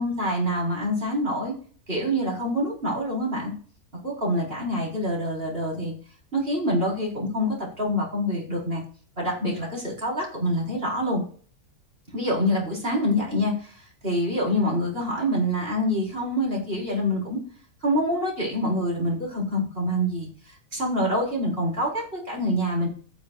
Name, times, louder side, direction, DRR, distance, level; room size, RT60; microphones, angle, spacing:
voice 1, 0.0-1.5 1.9-3.5 4.0-5.9 6.3-8.8 9.2-11.2 12.1-17.4 17.8-20.3 20.7-22.9, equal, 40° right, -3 dB, 5.0 m, -26 dB
16.5 x 7.1 x 2.5 m, 0.44 s
omnidirectional pair, 1.6 m